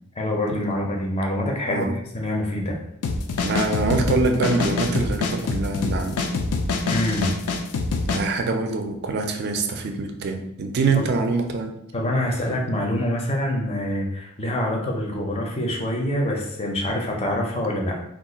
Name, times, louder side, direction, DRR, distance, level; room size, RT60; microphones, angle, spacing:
voice 1, 0.2-1.9 2.1-2.8 6.9-7.4 10.9-11.0 11.9-18.0, left 1 dB, 25° left, 1 dB, 0.5 m, -25 dB
sound 1, 3.0-8.2, left 3 dB, 80° left, 0.4 m, -25 dB
voice 2, 3.4-6.2 8.1-11.7, right 3 dB, 45° right, 5 dB, 0.4 m, -24 dB
2.4 x 2.3 x 3.8 m, 0.77 s
head